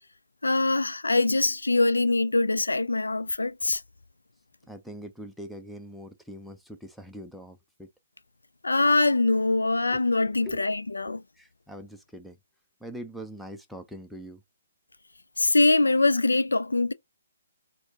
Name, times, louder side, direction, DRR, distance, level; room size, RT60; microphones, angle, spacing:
voice 1, 0.4-3.8 8.6-11.2 15.4-16.9, left 2 dB, 75° left, 0.4 m, -23 dB
voice 2, 4.6-7.9 9.9-10.7 11.1-12.4 12.8-14.4, equal, ahead, 0.4 m, -43 dB
4.2 x 2.1 x 2.7 m
figure-of-eight pair, 135°, 0 cm